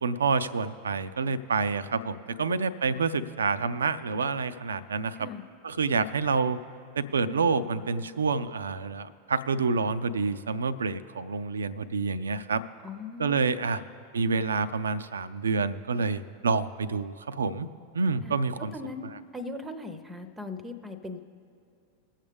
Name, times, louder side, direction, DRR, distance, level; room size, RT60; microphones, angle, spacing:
voice 1, 0.0-5.3 5.6-6.6 7.0-12.6 13.2-13.8 14.1-17.7 17.9-18.7, right 4 dB, 70° right, 14 dB, 0.4 m, -28 dB
voice 2, 12.8-13.6 18.2-18.4 18.7-19.1 19.3-21.2, left 3 dB, 10° right, 11 dB, 0.7 m, -39 dB
21.0 x 7.3 x 3.4 m, 2.6 s
figure-of-eight pair, 90°, 0 cm